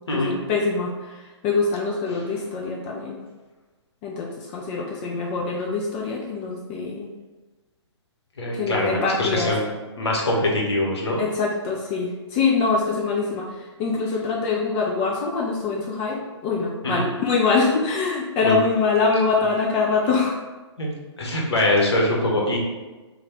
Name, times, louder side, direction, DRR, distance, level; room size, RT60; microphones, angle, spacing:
voice 1, 0.1-3.2 4.0-7.1 8.5-9.5 11.2-20.4, left 4 dB, 20° left, -1 dB, 0.4 m, -24 dB
voice 2, 2.1-2.4 8.4-9.7 10.0-11.2 16.8-17.1 18.4-18.6 20.8-20.9 21.2-22.6, left 1 dB, 65° left, -2 dB, 1.1 m, -23 dB
3.1 x 2.3 x 4.2 m, 1.2 s
figure-of-eight pair, 125°, 15 cm